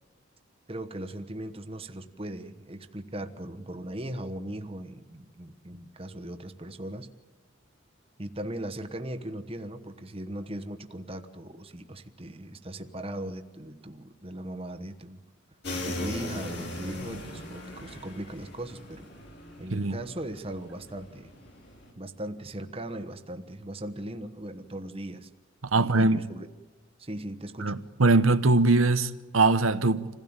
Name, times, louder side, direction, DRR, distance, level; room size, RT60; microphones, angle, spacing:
voice 1, 0.7-7.1 8.2-15.2 15.8-19.1 19.6-21.3 22.0-25.3 25.8-26.5 27.0-27.7, right 1 dB, 30° right, 1.2 m, -38 dB
sound 1, 15.6-21.9, left 1 dB, 55° left, 4.7 m, -39 dB
voice 2, 25.7-26.2 27.6-30.1, right 3 dB, 85° right, 1.0 m, -22 dB
27.0 x 16.5 x 8.9 m
head